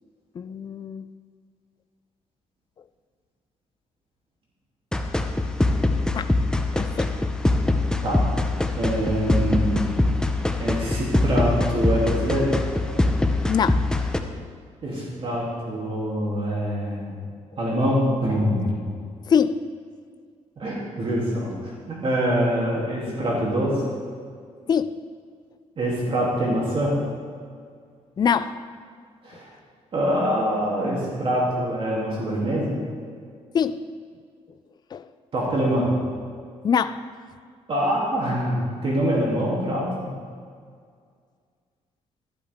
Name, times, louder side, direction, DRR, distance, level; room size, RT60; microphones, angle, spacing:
voice 1, 0.4-1.0 6.1-6.3 6.7-7.1 13.5-13.8 19.3-19.6 24.7-24.9 28.2-28.5 33.5-33.8 34.9-35.1 36.6-37.0, left 7 dB, 35° left, 12 dB, 0.4 m, -23 dB
sound 1, 4.9-14.2, left 2 dB, 5° left, 0.8 m, -23 dB
voice 2, 8.8-10.0 10.6-12.5 14.8-17.2 17.6-18.7 20.6-21.5 21.9-23.8 25.8-27.0 29.2-29.5 29.9-32.8 35.3-35.9 37.7-40.1, equal, 45° right, -5 dB, 3.0 m, -24 dB
12.5 x 11.5 x 3.6 m, 2.1 s
cardioid pair, 115°, 12 cm